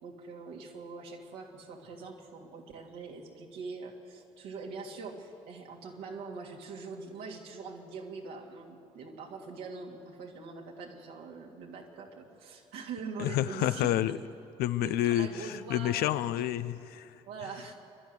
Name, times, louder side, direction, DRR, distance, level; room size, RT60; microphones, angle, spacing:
voice 1, 0.0-14.0 14.8-16.1 17.3-17.7, right 4 dB, 80° right, -1 dB, 3.1 m, -43 dB
voice 2, 13.2-14.2 14.6-17.2, left 13 dB, 75° left, 13 dB, 0.7 m, -29 dB
27.0 x 12.0 x 9.9 m, 2.5 s
hypercardioid pair, 55°, 16 cm